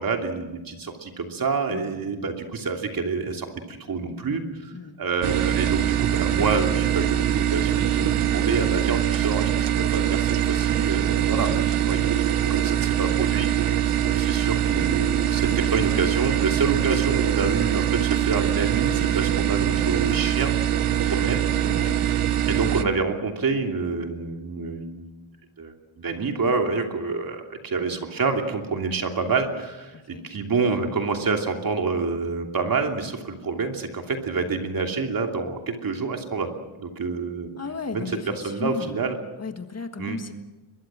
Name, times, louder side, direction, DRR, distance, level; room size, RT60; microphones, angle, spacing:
voice 1, 0.0-20.5 20.9-21.5 22.5-25.1 25.6-36.5 36.8-37.5 37.9-39.2 40.0-40.2, right 4 dB, 45° right, 3 dB, 2.9 m, -27 dB
sound 1, 5.2-22.8, right 11 dB, 85° right, 1.3 m, -23 dB
voice 2, 11.8-12.2 21.6-22.0 30.1-30.3 37.5-39.0 39.4-40.3, left 4 dB, 30° left, 7 dB, 1.7 m, -35 dB
24.0 x 21.5 x 7.5 m, 1.1 s
wide cardioid pair, 145°, 49 cm